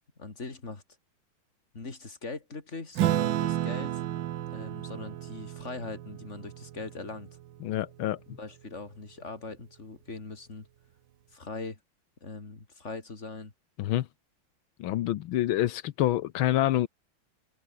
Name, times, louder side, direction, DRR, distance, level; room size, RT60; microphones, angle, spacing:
voice 1, 0.2-0.8 1.7-4.0 4.5-7.3 8.3-10.7 11.3-11.8 12.2-13.5, left 3 dB, 35° left, 3.5 m, -41 dB
Acoustic guitar / Strum, 3.0-7.8, right 12 dB, 70° right, 1.5 m, -32 dB
voice 2, 7.6-8.2 13.8-14.1 14.8-16.9, left 13 dB, 85° left, 1.6 m, -27 dB
omnidirectional pair, 2.2 m